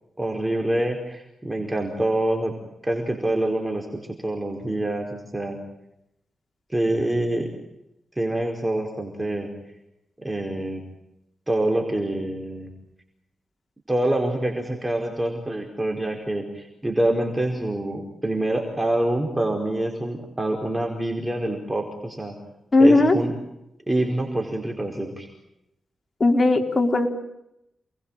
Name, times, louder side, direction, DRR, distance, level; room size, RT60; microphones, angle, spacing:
voice 1, 0.2-2.5 2.8-3.9 4.2-5.6 6.7-7.5 8.2-9.5 10.2-10.8 11.5-12.7 13.9-22.4 22.8-23.3 23.9-25.3, right 1 dB, 15° right, 2 dB, 4.9 m, -26 dB
voice 2, 22.7-23.1 26.2-27.1, left 2 dB, 30° left, 3 dB, 4.6 m, -17 dB
29.5 x 21.5 x 9.0 m, 0.85 s
wide cardioid pair, 105°, 0 cm